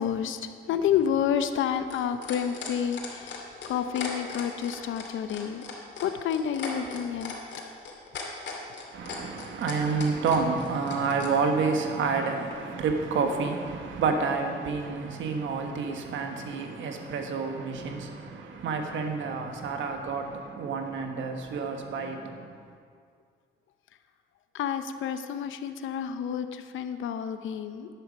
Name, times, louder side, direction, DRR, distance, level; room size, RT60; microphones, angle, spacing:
voice 1, 0.0-5.7 6.0-7.3 24.5-27.9, left 8 dB, 80° left, 9 dB, 0.8 m, -29 dB
sound 1, 0.8-11.3 12.5-12.6, left 6 dB, 65° left, 2.5 m, -38 dB
voice 2, 8.9-22.5, right 4 dB, 75° right, 4 dB, 1.4 m, -29 dB
10.5 x 10.5 x 5.3 m, 2.2 s
cardioid pair, 90°, 20 cm